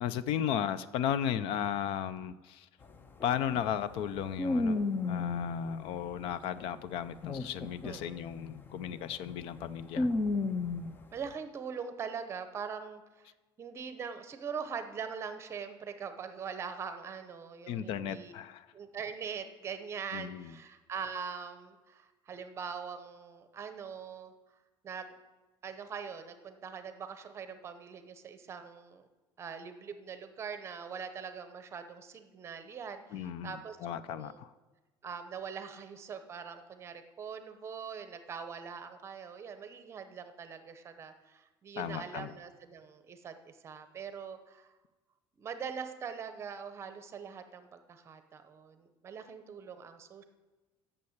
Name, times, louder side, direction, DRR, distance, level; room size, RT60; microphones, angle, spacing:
voice 1, 0.0-2.7 3.2-4.8 5.1-10.1 17.7-18.7 20.1-20.5 33.1-34.5 41.8-42.3, left 9 dB, 65° left, 15 dB, 0.5 m, -35 dB
sound 1, 2.8-2.9 3.2-6.5 7.0-11.0, left 3 dB, 20° left, 0.5 m, -34 dB
voice 2, 7.8-8.3 11.1-13.3 13.6-18.3 18.7-24.3 24.8-25.2 25.6-29.1 29.4-33.8 34.1-34.4 35.0-44.7 45.4-50.2, right 6 dB, 25° right, 9 dB, 0.8 m, -42 dB
8.6 x 6.9 x 7.9 m, 1.2 s
cardioid pair, 165°, 10 cm